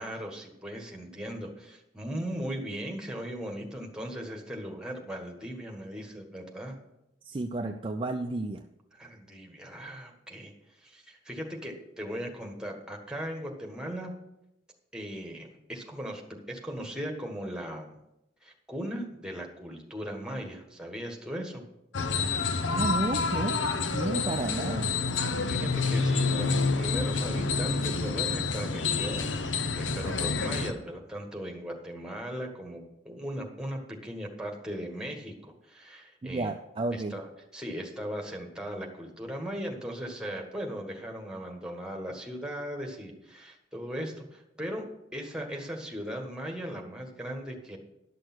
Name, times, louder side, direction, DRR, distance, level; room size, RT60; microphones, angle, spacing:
voice 1, 0.0-6.7 8.9-10.5 10.8-14.1 14.9-18.0 18.4-21.6 25.2-36.5 36.9-37.3 37.5-44.8 45.1-47.8, equal, 5° right, 2 dB, 1.5 m, -38 dB
voice 2, 7.2-8.6 22.6-23.6 23.9-24.9 36.2-37.1, right 2 dB, 30° right, 5 dB, 0.4 m, -32 dB
sound 1, 21.9-30.7, left 4 dB, 90° left, 0.8 m, -28 dB
11.5 x 6.5 x 6.0 m, 0.86 s
head